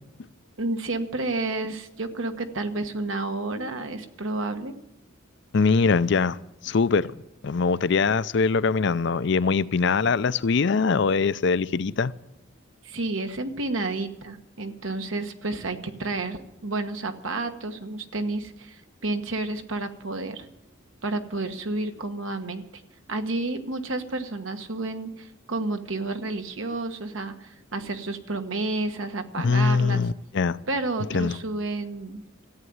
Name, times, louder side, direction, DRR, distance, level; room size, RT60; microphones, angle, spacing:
voice 1, 0.6-4.7 12.8-20.5 21.0-22.6 23.1-30.1 30.7-32.2, right 2 dB, 80° right, 1.3 m, -30 dB
voice 2, 5.5-6.4 6.6-7.1 7.4-12.1 29.4-30.6 31.1-31.4, left 4 dB, 60° left, 0.5 m, -22 dB
14.0 x 8.9 x 9.4 m
head